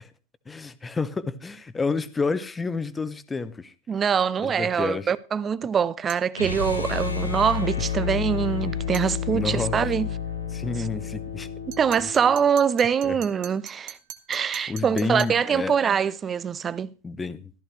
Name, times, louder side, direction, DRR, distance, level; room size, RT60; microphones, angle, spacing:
voice 1, 0.5-3.7 4.4-5.1 9.3-9.8 10.5-11.5 13.0-13.2 14.7-15.7 17.0-17.5, left 4 dB, 15° left, 0.8 m, -29 dB
voice 2, 3.9-10.1 10.8-10.9 11.8-14.0 14.3-16.9, right 7 dB, 20° right, 0.5 m, -24 dB
sound 1, 6.1-6.3 8.9-9.1 11.7-15.4, right 12 dB, 45° right, 1.0 m, -42 dB
sound 2, 6.3-12.4, left 7 dB, 80° left, 2.1 m, -30 dB
14.0 x 13.5 x 3.2 m
figure-of-eight pair, 90°, 0 cm